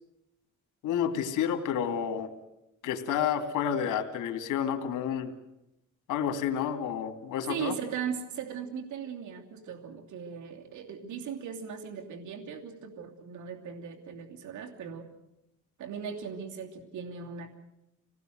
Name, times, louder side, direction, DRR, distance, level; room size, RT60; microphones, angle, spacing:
voice 1, 0.8-2.3 2.8-5.3 6.1-7.7, left 8 dB, 90° left, 8 dB, 2.7 m, -30 dB
voice 2, 7.5-15.1 15.8-17.5, right 7 dB, 75° right, 3 dB, 2.9 m, -38 dB
26.0 x 19.0 x 7.8 m, 0.87 s
cardioid pair, 90°, 30 cm